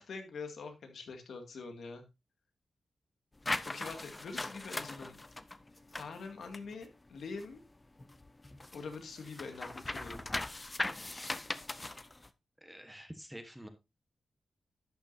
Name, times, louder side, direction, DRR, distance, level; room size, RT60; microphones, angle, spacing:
voice 1, 0.0-2.0 3.6-5.2 5.9-7.6 8.7-10.4, left 4 dB, 80° left, 5 dB, 2.1 m, -44 dB
sound 1, 3.4-7.7 8.0-12.3, left 2 dB, 20° left, 0.7 m, -39 dB
voice 2, 12.6-13.7, equal, 5° right, 7 dB, 1.2 m, -48 dB
11.5 x 8.9 x 2.7 m, 0.23 s
wide cardioid pair, 115°, 0 cm